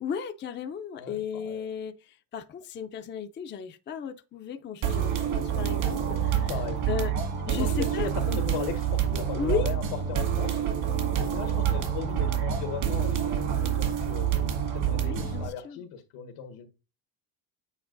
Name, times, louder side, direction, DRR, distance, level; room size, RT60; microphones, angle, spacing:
voice 1, 0.0-6.5 6.9-7.1 7.5-8.1 9.3-9.7 15.0-15.9, left 7 dB, 25° left, 0.5 m, -35 dB
voice 2, 1.0-1.6 6.5-6.9 7.5-10.6 11.1-16.7, left 8 dB, 80° left, 1.5 m, -38 dB
sound 1, 4.8-15.5, right 9 dB, 75° right, 2.2 m, -27 dB
8.7 x 4.4 x 2.5 m
cardioid pair, 115°, 49 cm